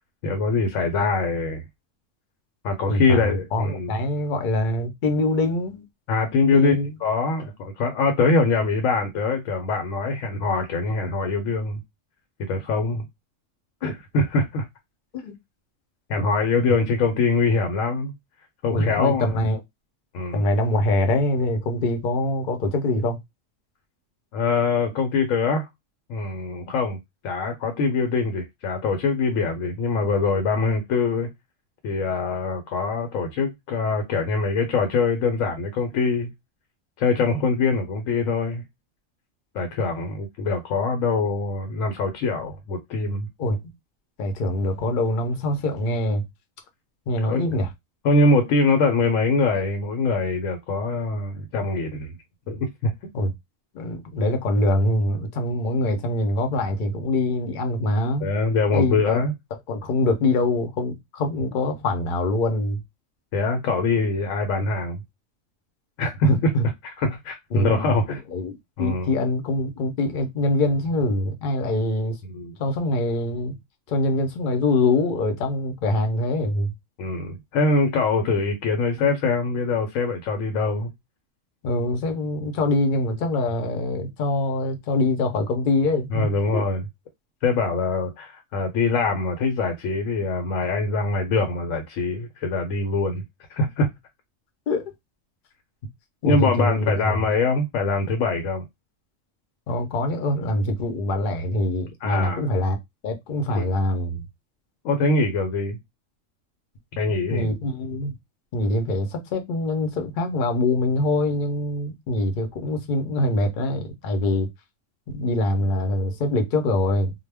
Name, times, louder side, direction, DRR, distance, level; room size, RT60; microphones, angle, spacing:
voice 1, 0.2-1.6 2.6-3.9 6.1-11.8 12.5-13.0 13.8-14.6 16.1-18.1 18.6-19.3 20.1-20.4 24.3-25.7 26.1-27.0 27.2-31.3 31.8-36.3 37.0-38.6 39.5-43.3 47.3-47.4 48.0-52.1 52.5-52.9 58.2-59.3 63.3-65.0 66.0-66.5 67.0-68.2 68.8-69.1 72.3-72.5 77.0-80.9 86.1-86.8 87.4-93.2 93.5-93.9 96.2-98.6 102.0-102.4 103.6-103.7 104.8-105.8 107.0-107.5, left 3 dB, 80° left, 1.0 m, -23 dB
voice 2, 2.9-5.8 6.5-7.0 13.8-14.0 15.2-15.3 18.7-19.6 20.3-23.2 43.4-43.6 44.2-46.2 47.1-47.7 53.1-53.3 53.7-58.3 58.7-59.2 59.7-62.8 66.2-66.6 67.5-72.2 72.6-73.5 73.9-76.7 81.6-86.6 94.7-94.9 96.2-97.2 99.7-102.8 103.0-104.2 107.3-108.1 108.5-114.5 115.1-117.1, left 2 dB, 50° left, 0.6 m, -24 dB
2.3 x 2.1 x 3.3 m
omnidirectional pair, 1.4 m